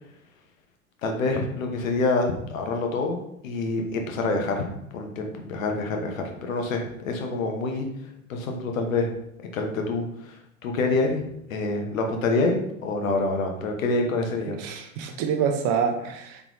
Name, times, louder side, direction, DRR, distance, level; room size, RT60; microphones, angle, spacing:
voice 1, 1.0-3.2 3.4-4.7 4.9-7.9 8.3-9.1 9.5-11.2 11.5-14.6, left 3 dB, 70° left, 3 dB, 1.0 m, -26 dB
voice 2, 14.6-16.4, right 7 dB, 40° right, 5 dB, 0.7 m, -26 dB
4.1 x 3.4 x 3.0 m, 0.76 s
hypercardioid pair, 95°, 41 cm